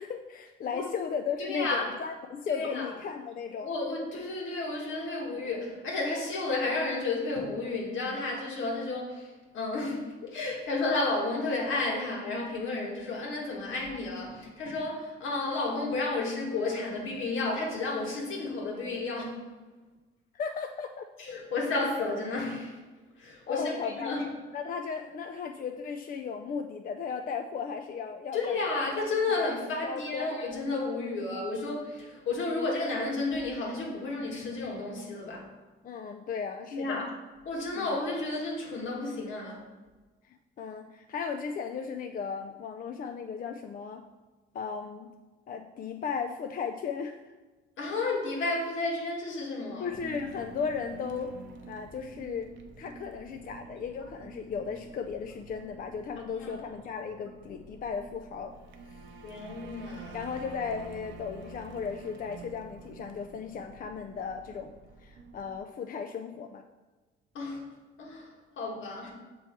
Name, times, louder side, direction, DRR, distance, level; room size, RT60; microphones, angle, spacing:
voice 1, 0.0-3.7 20.3-21.1 23.5-24.2 24.5-28.5 29.8-30.4 35.8-37.1 37.7-38.0 40.3-44.0 44.5-45.1 45.5-47.2 49.8-51.3 51.7-52.5 52.8-58.5 58.9-59.0 60.1-64.7 65.0-66.6, left 6 dB, 45° left, 0.4 m, -36 dB
voice 2, 1.4-1.9 2.5-2.9 3.6-19.4 21.2-22.8 23.2-24.2 28.3-35.5 36.7-37.1 37.4-39.6 47.8-49.9 56.2-56.6 59.2-60.2 67.3-67.6 68.0-69.1, left 3 dB, 75° left, 1.5 m, -32 dB
sound 1, 49.9-65.6, right 4 dB, 75° right, 0.6 m, -48 dB
6.9 x 3.1 x 4.4 m
cardioid pair, 90°, 20 cm